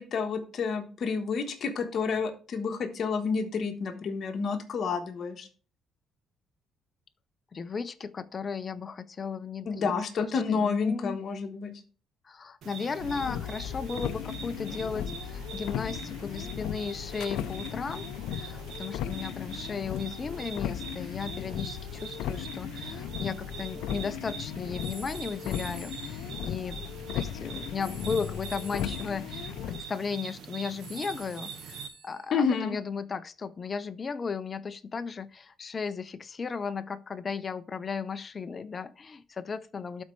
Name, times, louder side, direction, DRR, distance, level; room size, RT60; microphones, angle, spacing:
voice 1, 0.0-5.5 9.7-11.7 32.3-32.7, left 5 dB, 45° left, 1.2 m, -29 dB
voice 2, 7.5-9.9 10.2-11.2 12.2-26.8 27.1-40.0, left 5 dB, 25° left, 0.5 m, -35 dB
sound 1, 12.6-31.9, right 7 dB, 65° right, 1.0 m, -44 dB
sound 2, 13.0-29.8, left 10 dB, 90° left, 0.4 m, -37 dB
sound 3, 24.8-27.0 27.8-29.2 30.8-32.5, right 3 dB, 85° right, 1.3 m, -49 dB
12.5 x 4.2 x 3.1 m
cardioid pair, 155°, 0 cm